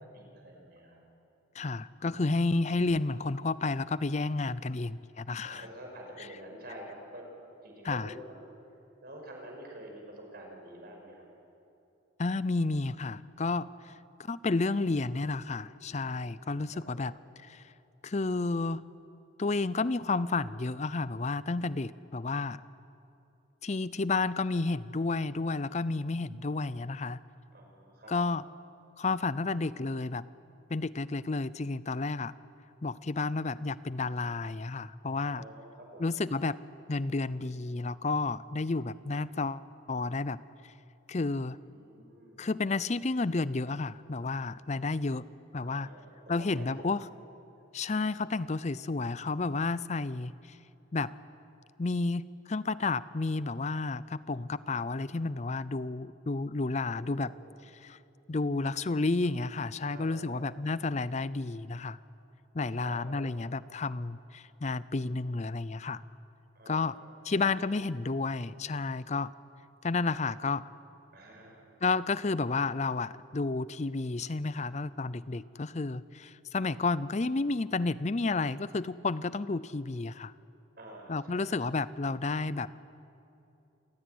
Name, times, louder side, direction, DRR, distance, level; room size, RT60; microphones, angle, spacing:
voice 1, 0.1-1.0 5.4-7.3 7.6-8.3 9.0-11.3 16.1-17.0 27.5-28.1 35.2-36.0 41.6-42.5 45.6-47.0 56.9-57.5 59.9-60.6 62.8-63.2 66.5-67.0 67.4-67.5 71.1-71.7 80.8-81.5, right 1 dB, 50° right, 1 dB, 5.7 m, -48 dB
voice 2, 1.5-5.6 7.8-8.1 12.2-13.9 14.2-17.1 17.4-17.7 18.0-18.9 19.4-22.6 23.6-27.2 28.1-28.4 29.0-30.2 30.7-32.3 32.8-35.4 36.0-36.6 36.9-40.7 41.1-41.6 42.4-45.3 45.5-45.9 46.3-47.1 47.7-50.6 50.9-51.1 51.8-57.3 57.6-58.0 58.3-62.0 62.5-66.0 66.7-66.9 67.2-69.3 69.8-70.7 71.8-80.3 81.1-82.7, left 3 dB, 35° left, 17 dB, 0.5 m, -31 dB
28.0 x 16.5 x 9.5 m, 2.9 s
head